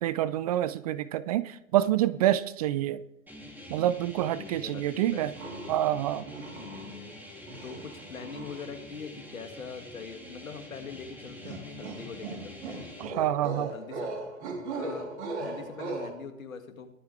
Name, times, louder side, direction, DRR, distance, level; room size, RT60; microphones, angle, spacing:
voice 1, 0.0-3.0 3.7-5.3 5.7-6.2 13.0-13.7, right 13 dB, 30° right, 17 dB, 0.4 m, -27 dB
sound 1, 3.3-13.0, left 1 dB, 5° right, 3.2 m, -46 dB
voice 2, 4.4-5.7 6.6-7.2 7.6-12.9 13.4-14.3 14.7-16.9, left 6 dB, 75° left, 5 dB, 2.4 m, -43 dB
sound 2, 5.3-5.9 6.2-7.1 7.5-8.7 11.4-16.1, right 3 dB, 55° right, 3.7 m, -38 dB
22.0 x 8.1 x 3.5 m, 0.81 s
figure-of-eight pair, 110°, 41 cm